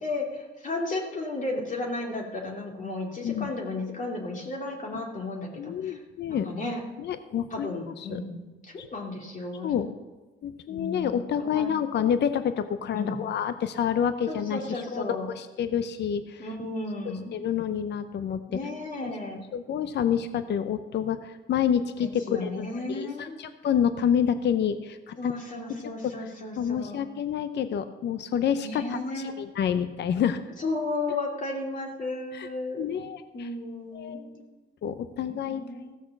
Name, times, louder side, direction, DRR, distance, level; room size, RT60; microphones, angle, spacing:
voice 1, 0.0-6.0 6.3-6.8 7.5-9.8 10.7-11.7 12.9-13.2 14.3-15.3 16.4-17.4 18.5-19.4 22.0-23.4 25.2-27.0 28.6-29.4 30.6-32.9 33.3-34.5 35.2-36.0, left 2 dB, 40° left, 0 dB, 2.6 m, -34 dB
voice 2, 5.6-6.5 7.0-8.2 9.6-9.9 10.4-15.0 15.4-16.5 17.3-18.4 19.0-19.1 19.5-25.3 26.0-26.1 26.6-30.4 32.3-32.5 32.8-33.5 33.9-34.2 34.8-35.6, left 8 dB, 60° left, 11 dB, 0.7 m, -28 dB
15.5 x 6.4 x 7.1 m, 1.2 s
cardioid pair, 90°, 20 cm